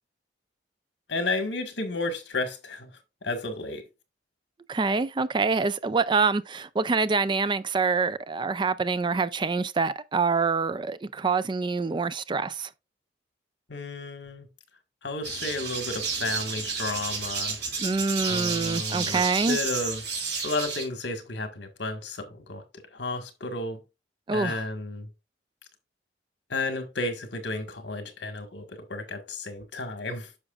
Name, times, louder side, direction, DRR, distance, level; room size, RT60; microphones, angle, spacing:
voice 1, 1.1-2.9 3.2-3.8 13.7-14.5 15.0-17.6 18.3-20.2 20.4-22.6 22.9-23.8 24.3-25.1 26.5-30.3, left 2 dB, 75° left, 1.7 m, -32 dB
voice 2, 4.7-12.7 17.8-19.6 24.3-24.6, right 4 dB, 25° right, 0.3 m, -26 dB
sound 1, 15.2-20.8, right 5 dB, 65° right, 3.3 m, -31 dB
9.7 x 6.3 x 2.4 m
head